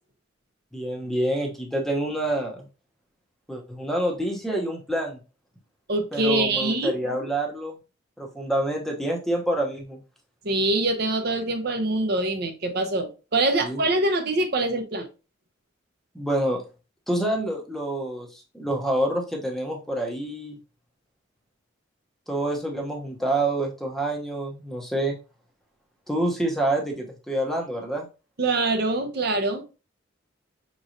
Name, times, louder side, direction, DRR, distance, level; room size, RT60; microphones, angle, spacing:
voice 1, 0.7-2.7 3.5-5.2 6.1-7.8 8.2-10.0 13.6-13.8 16.1-16.6 17.1-20.6 22.3-25.2 26.1-28.1, right 1 dB, ahead, 1 dB, 0.6 m, -27 dB
voice 2, 5.9-6.9 10.4-15.1 28.4-29.6, right 2 dB, 50° right, 5 dB, 0.6 m, -24 dB
5.2 x 3.0 x 2.5 m, 0.31 s
head